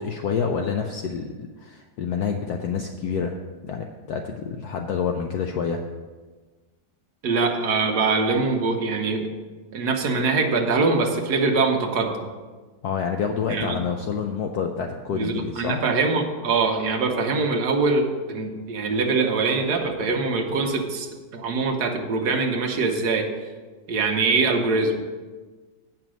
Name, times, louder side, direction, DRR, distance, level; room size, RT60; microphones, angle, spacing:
voice 1, 0.0-3.4 3.6-5.8 12.8-15.8, left 6 dB, 70° left, 4 dB, 1.0 m, -28 dB
voice 2, 7.2-9.3 9.7-12.2 13.5-13.7 15.1-23.3 23.9-25.0, right 4 dB, 60° right, 3 dB, 1.5 m, -23 dB
8.8 x 6.0 x 6.2 m, 1.3 s
omnidirectional pair, 2.1 m